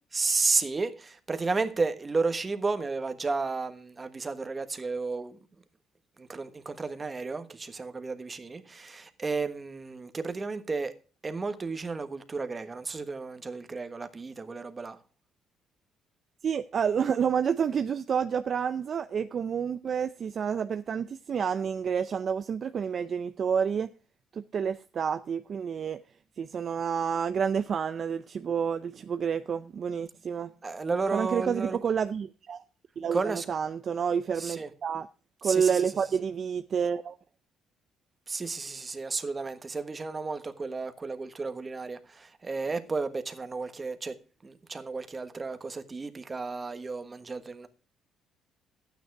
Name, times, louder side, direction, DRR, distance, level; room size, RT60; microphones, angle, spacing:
voice 1, 0.1-5.4 6.2-10.9 11.2-15.0 30.6-31.8 33.1-33.4 34.4-34.7 35.4-35.9 38.3-44.2 44.4-47.7, right 4 dB, 25° right, 1.3 m, -32 dB
voice 2, 16.4-23.9 24.3-26.0 26.4-30.5 31.1-32.6 33.0-35.1 35.4-37.2, right 7 dB, 45° right, 0.5 m, -29 dB
12.0 x 9.3 x 4.6 m
cardioid pair, 115°, 0 cm